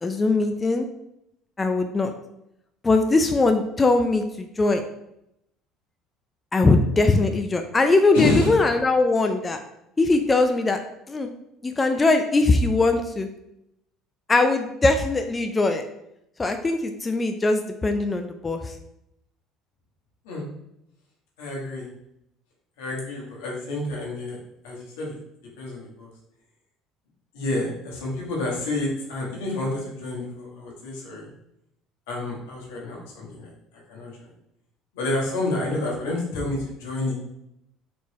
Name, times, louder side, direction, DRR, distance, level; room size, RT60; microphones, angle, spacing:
voice 1, 0.0-0.9 1.6-2.1 2.8-4.8 6.5-9.6 10.0-10.8 11.1-11.3 11.6-13.3 14.3-15.8 16.4-18.7, left 3 dB, 25° left, 6 dB, 0.4 m, -21 dB
voice 2, 8.1-8.5 20.2-20.5 21.4-21.9 22.8-24.4 24.6-25.2 25.6-26.1 27.3-31.3 32.1-33.5 33.9-34.2 34.9-37.1, left 2 dB, 85° left, -3 dB, 1.4 m, -29 dB
4.3 x 3.2 x 3.1 m, 0.81 s
hypercardioid pair, 75°, 0 cm